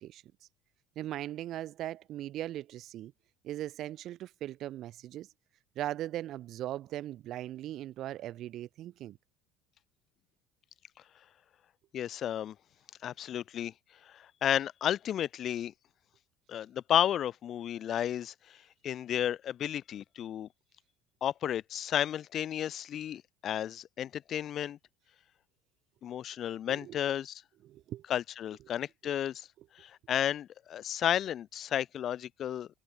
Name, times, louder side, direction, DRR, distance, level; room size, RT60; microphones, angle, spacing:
voice 1, 1.0-3.1 3.4-5.3 5.8-9.2 26.7-27.0 27.6-28.0 29.0-29.1, right 13 dB, 55° right, 0.9 m, -39 dB
voice 2, 11.9-12.5 13.0-13.7 14.1-15.7 16.5-18.3 18.8-20.5 21.2-24.8 26.0-27.4 28.1-29.5 29.8-32.7, left 10 dB, 50° left, 0.7 m, -32 dB
supercardioid pair, 90°, 0 cm